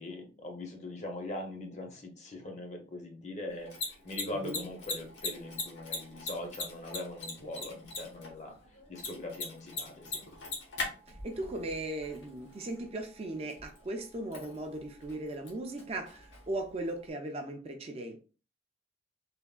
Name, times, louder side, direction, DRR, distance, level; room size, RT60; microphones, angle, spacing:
voice 1, 0.0-8.6 8.9-10.3, left 1 dB, 35° left, 3 dB, 0.6 m, -41 dB
Mechanisms, 3.5-17.1, left 3 dB, 75° left, 1.0 m, -42 dB
voice 2, 11.1-18.2, right 2 dB, 30° right, 4 dB, 0.4 m, -38 dB
3.3 x 2.1 x 2.3 m, 0.34 s
head